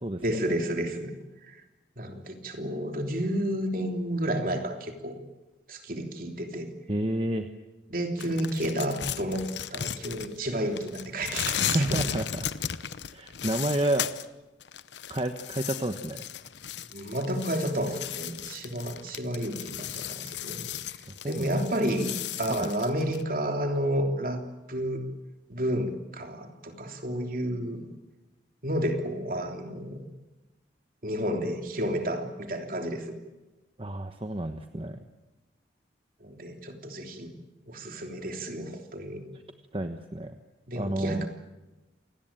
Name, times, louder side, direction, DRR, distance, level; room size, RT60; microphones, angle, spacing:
voice 1, 0.2-1.1 1.5-1.6 2.0-5.2 5.7-6.7 7.9-12.0 16.9-20.7 21.3-24.4 24.7-25.0 25.5-27.8 28.6-30.0 31.0-33.2 36.2-37.3 37.7-39.2 40.7-41.3, equal, 50° right, 4 dB, 3.3 m, -31 dB
voice 2, 6.9-7.5 11.5-12.5 13.1-14.1 15.1-16.2 21.2-21.5 22.5-22.7 33.8-35.0 39.7-40.4 40.7-41.3, right 1 dB, 30° right, 6 dB, 1.2 m, -30 dB
sound 1, 8.2-10.5 10.8-14.3 14.6-23.2, left 9 dB, 80° left, 0.9 m, -36 dB
28.0 x 19.0 x 8.9 m, 1.1 s
head